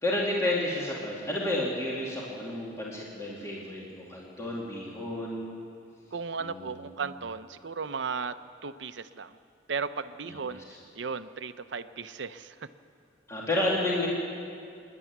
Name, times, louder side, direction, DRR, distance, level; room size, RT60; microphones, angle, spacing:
voice 1, 0.0-5.7 6.4-7.0 10.3-10.4 10.7-10.8 13.3-14.1, left 1 dB, 15° left, -4 dB, 2.4 m, -31 dB
voice 2, 6.1-8.3 8.6-9.4 9.7-10.6 10.9-12.7, right 5 dB, 75° right, 12 dB, 0.7 m, -35 dB
26.0 x 11.0 x 9.4 m, 2.4 s
head